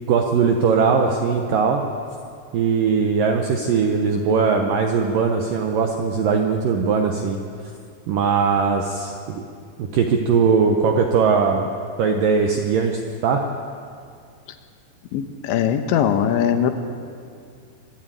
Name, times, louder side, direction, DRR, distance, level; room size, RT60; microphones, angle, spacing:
voice 1, 0.1-1.8 2.5-7.4 8.1-9.4 9.8-11.7 12.0-13.4, right 5 dB, 75° right, 3 dB, 2.0 m, -20 dB
voice 2, 15.1-16.7, left 9 dB, 80° left, 7 dB, 3.3 m, -20 dB
24.5 x 12.0 x 9.2 m, 2.3 s
omnidirectional pair, 5.3 m